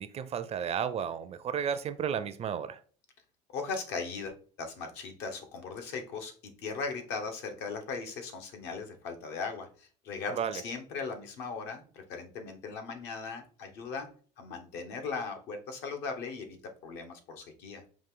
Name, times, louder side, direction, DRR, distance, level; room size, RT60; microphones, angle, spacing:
voice 1, 0.0-2.8 10.3-10.6, right 8 dB, 35° right, 0.4 m, -33 dB
voice 2, 3.5-14.1 14.4-16.6 16.8-17.8, left 4 dB, 70° left, 1.1 m, -38 dB
5.1 x 2.5 x 3.8 m
supercardioid pair, 110°, 18 cm